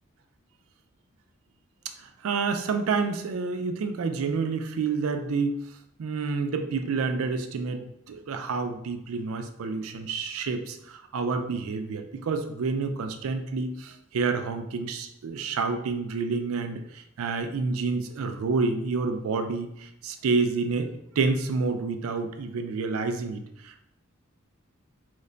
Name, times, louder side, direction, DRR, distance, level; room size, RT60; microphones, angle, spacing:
voice 1, 2.0-5.6 6.0-20.9 21.2-23.8, right 4 dB, 85° right, 7 dB, 0.4 m, -29 dB
3.1 x 2.2 x 3.8 m, 0.78 s
head